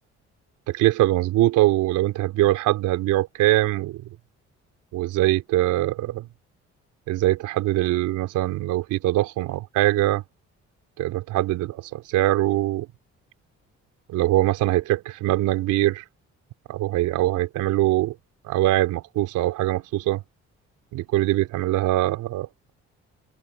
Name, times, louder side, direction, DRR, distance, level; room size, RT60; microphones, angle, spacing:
voice 1, 0.7-4.0 4.9-6.3 7.1-10.2 11.0-12.9 14.1-16.0 16.7-18.1 18.4-20.2 20.9-22.5, right 16 dB, 85° right, 3.8 m, -22 dB
supercardioid pair, 65°, 30 cm